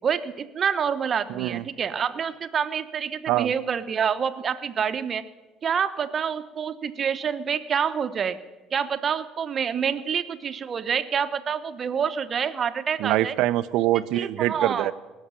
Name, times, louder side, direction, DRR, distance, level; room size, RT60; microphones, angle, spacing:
voice 1, 0.0-5.2 5.6-8.4 8.7-13.3 14.1-14.9, right 7 dB, 45° right, 11 dB, 1.0 m, -27 dB
voice 2, 1.3-1.6 3.3-3.5 13.0-14.9, right 15 dB, 75° right, 15 dB, 0.6 m, -24 dB
18.0 x 6.5 x 9.6 m, 1.2 s
supercardioid pair, 80°, 0 cm